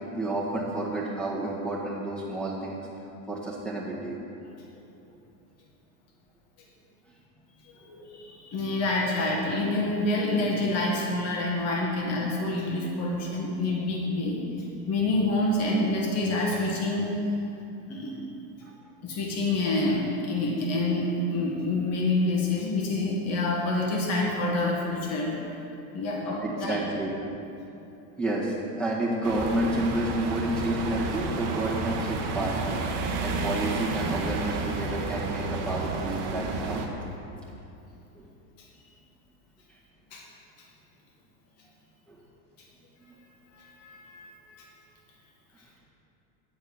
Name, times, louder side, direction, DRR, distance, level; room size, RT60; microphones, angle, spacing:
voice 1, 0.2-2.9 3.3-4.2 18.6-18.7 26.4-27.1 28.2-32.8 33.2-36.8 38.1-38.3 42.1-42.2, right 1 dB, ahead, -5 dB, 1.7 m, -30 dB
voice 2, 7.6-14.4 14.9-17.2 17.9-18.2 19.0-25.4 25.9-26.8 40.1-40.2 43.6-44.7, left 2 dB, 35° left, -2 dB, 1.7 m, -27 dB
sound 1, 29.2-36.9, right 3 dB, 35° right, 1.0 m, -31 dB
9.9 x 4.4 x 7.1 m, 2.8 s
supercardioid pair, 140°, 43 cm